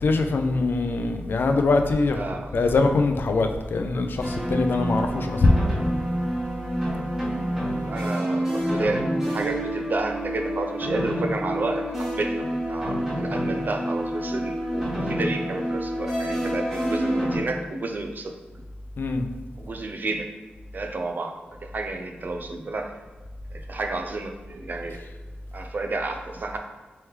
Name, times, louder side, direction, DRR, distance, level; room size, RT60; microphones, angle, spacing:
voice 1, 0.0-2.2 2.5-5.5 19.0-19.3, left 3 dB, 65° left, 6 dB, 0.4 m, -22 dB
voice 2, 2.1-2.5 7.8-18.3 19.6-20.3 20.7-21.4 21.6-23.0 23.5-25.0 25.5-26.6, right 2 dB, 55° right, 4 dB, 0.5 m, -31 dB
sound 1, 4.2-17.4, equal, 15° right, 1.4 m, -28 dB
3.3 x 3.1 x 3.2 m, 1.3 s
cardioid pair, 65°, 4 cm